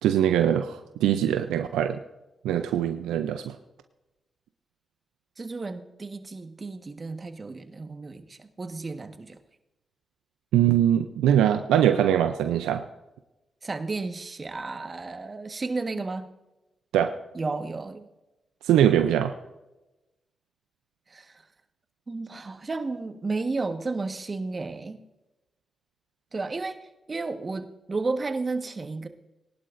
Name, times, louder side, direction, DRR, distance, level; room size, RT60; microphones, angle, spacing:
voice 1, 0.0-2.0 2.4-3.6 10.5-12.8 16.9-17.1 18.6-19.3, right 10 dB, 90° right, 8 dB, 0.5 m, -22 dB
voice 2, 5.4-9.4 13.6-16.3 17.3-18.1 21.1-21.4 22.1-25.0 26.3-29.1, right 3 dB, 40° right, 8 dB, 1.4 m, -33 dB
20.5 x 11.5 x 2.6 m, 1.0 s
supercardioid pair, 45°, 0 cm